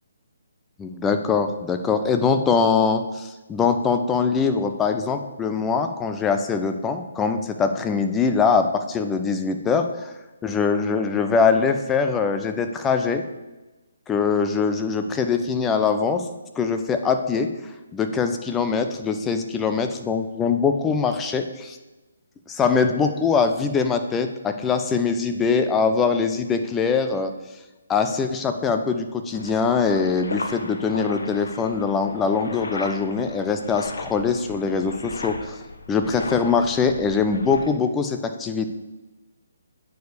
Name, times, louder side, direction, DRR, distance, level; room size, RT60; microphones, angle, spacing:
voice 1, 0.8-10.1 10.4-13.2 14.1-16.2 16.6-17.5 17.9-21.8 22.5-27.3 27.9-35.6 35.9-38.7, left 5 dB, 10° left, 7 dB, 0.7 m, -22 dB
sound 1, 29.3-37.7, left 3 dB, 70° left, 1.3 m, -37 dB
9.2 x 4.8 x 6.9 m, 1.1 s
hypercardioid pair, 150°, 0 cm